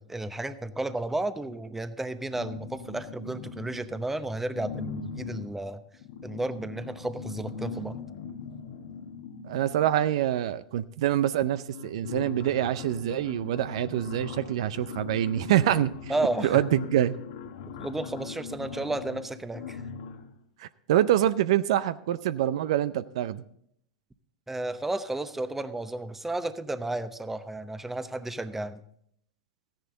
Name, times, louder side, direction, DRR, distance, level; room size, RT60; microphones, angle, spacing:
voice 1, 0.0-5.8 6.2-8.0 16.1-16.6 17.8-19.8 24.5-28.8, right 2 dB, 10° right, 12 dB, 0.8 m, -32 dB
sound 1, 2.2-4.0 4.5-10.2 11.1-11.2 11.5-20.4, left 6 dB, 70° left, 1.4 m, -40 dB
voice 2, 9.5-15.9 16.4-17.1 20.6-23.4, right 12 dB, 70° right, 15 dB, 0.5 m, -25 dB
14.0 x 10.5 x 3.8 m, 0.70 s
hypercardioid pair, 100°, 3 cm